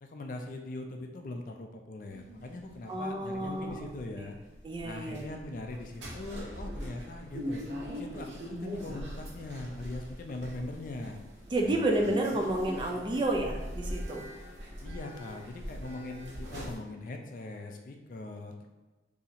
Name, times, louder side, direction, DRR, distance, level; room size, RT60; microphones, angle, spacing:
voice 1, 0.0-4.4 4.8-7.6 7.9-11.2 11.6-12.2 14.8-18.7, left 2 dB, 50° left, 3 dB, 0.4 m, -41 dB
sound 1, 2.1-16.8, equal, 85° right, 0.8 m, -42 dB
voice 2, 2.9-3.9 4.2-4.3 4.6-5.4 11.5-14.3, right 1 dB, 25° right, 1 dB, 0.4 m, -30 dB
2.8 x 2.6 x 4.1 m, 1.2 s
head